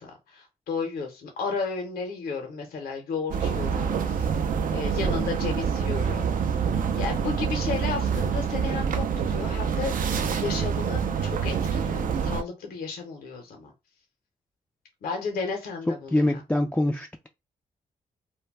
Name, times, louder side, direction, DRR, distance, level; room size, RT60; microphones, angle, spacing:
voice 1, 0.0-4.4 4.7-9.9 10.3-13.7 15.0-16.4, left 5 dB, 75° left, 0.7 m, -33 dB
sound 1, 3.3-12.4, right 6 dB, 60° right, 0.5 m, -26 dB
voice 2, 15.9-17.3, left 1 dB, 10° left, 0.3 m, -25 dB
2.2 x 2.2 x 3.3 m
supercardioid pair, 50°, 15 cm